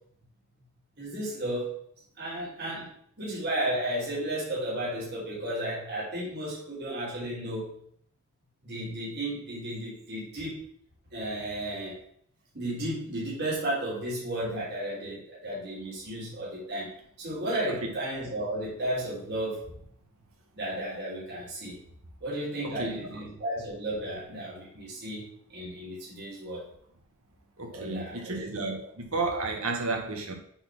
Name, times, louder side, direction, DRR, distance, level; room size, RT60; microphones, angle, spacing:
voice 1, 1.0-1.7 2.2-2.9 3.2-7.7 8.6-10.6 11.1-12.0 12.5-19.7 20.5-21.8 22.2-26.6 27.7-28.4 28.7-28.9, right 1 dB, 50° right, 3.4 m, -33 dB
voice 2, 22.6-23.2 27.6-30.3, right 3 dB, 70° right, 1.6 m, -32 dB
7.7 x 4.3 x 6.2 m
head